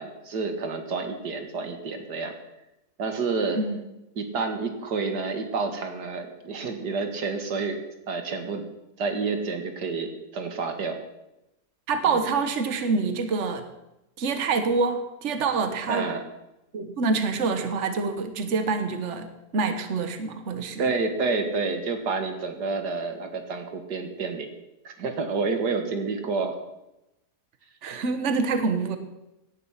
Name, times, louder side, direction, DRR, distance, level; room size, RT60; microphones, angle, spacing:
voice 1, 0.0-2.3 3.0-3.6 4.2-8.7 9.0-11.0 12.1-12.2 15.9-16.2 20.8-24.5 24.8-26.6 28.3-28.4, right 4 dB, 90° right, 6 dB, 2.2 m, -29 dB
voice 2, 11.9-13.7 14.2-16.1 16.7-19.3 19.5-20.9 27.8-29.0, right 4 dB, 50° right, 8 dB, 1.5 m, -26 dB
17.5 x 10.5 x 5.8 m, 0.93 s
omnidirectional pair, 1.7 m